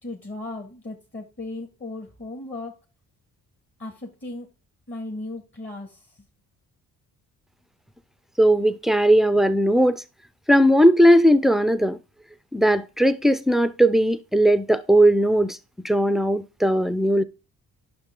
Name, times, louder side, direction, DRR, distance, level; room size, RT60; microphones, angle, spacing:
voice 1, 0.0-2.8 3.8-4.5 4.9-6.1, left 2 dB, 30° left, 1.9 m, -36 dB
voice 2, 8.4-10.0 10.5-12.0 12.5-15.6 15.8-17.2, equal, ahead, 0.6 m, -18 dB
9.7 x 5.9 x 3.8 m
supercardioid pair, 65°, 37 cm